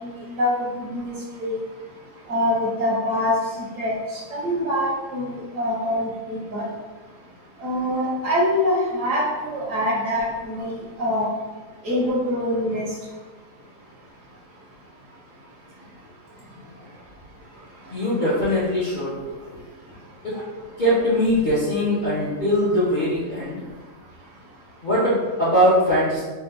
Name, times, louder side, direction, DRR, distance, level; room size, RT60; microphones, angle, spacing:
voice 1, 0.0-1.6 2.3-3.3 3.8-3.9 4.3-6.6 7.6-11.3 11.8-12.9, left 1 dB, 60° right, -4 dB, 0.9 m, -24 dB
voice 2, 17.9-19.2 20.2-20.5 20.8-23.6 24.8-26.2, equal, 50° left, -9 dB, 0.6 m, -21 dB
3.3 x 2.2 x 3.3 m, 1.3 s
omnidirectional pair, 1.7 m